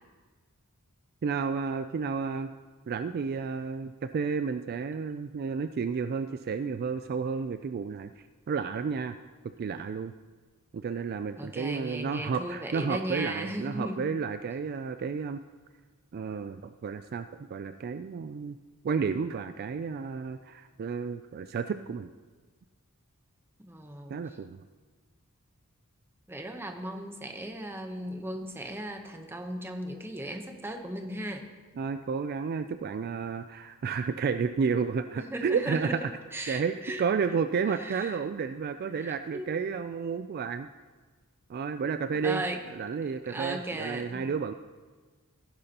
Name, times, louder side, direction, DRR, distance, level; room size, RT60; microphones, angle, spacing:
voice 1, 1.2-2.5 2.9-8.1 8.5-9.2 9.6-10.1 10.7-15.4 16.1-18.6 18.8-22.1 24.1-24.6 31.8-36.0 36.5-40.7 41.5-42.4 42.7-44.5, right 5 dB, 45° right, 10 dB, 0.3 m, -31 dB
voice 2, 11.4-14.1 23.6-24.2 26.3-31.5 35.1-36.0 36.3-37.0 37.7-38.2 38.9-39.5 42.2-42.6 43.3-44.3, right 1 dB, 10° right, 4 dB, 0.8 m, -36 dB
16.0 x 10.5 x 2.9 m, 1.4 s
head